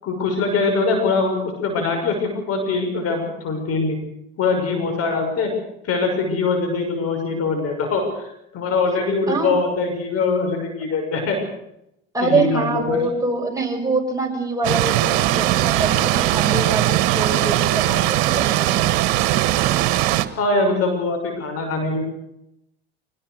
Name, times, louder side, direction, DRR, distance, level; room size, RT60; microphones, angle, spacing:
voice 1, 0.0-4.0 4.4-5.5 5.8-11.4 12.2-13.0 20.3-22.0, left 3 dB, 50° left, 4 dB, 6.4 m, -22 dB
voice 2, 12.1-19.2, right 3 dB, 10° right, 1 dB, 6.3 m, -24 dB
sound 1, 14.6-20.3, right 15 dB, 65° right, 1.5 m, -19 dB
24.0 x 19.0 x 6.6 m, 0.81 s
hypercardioid pair, 75°, 31 cm